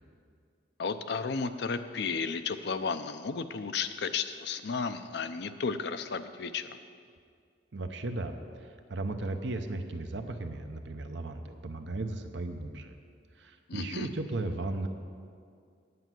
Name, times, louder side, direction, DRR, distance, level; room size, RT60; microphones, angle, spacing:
voice 1, 0.8-6.8 13.7-14.1, left 5 dB, 60° left, 10 dB, 0.5 m, -33 dB
voice 2, 7.7-13.0 13.4-14.9, right 2 dB, 70° right, 7 dB, 0.7 m, -36 dB
9.4 x 9.1 x 6.1 m, 2.2 s
head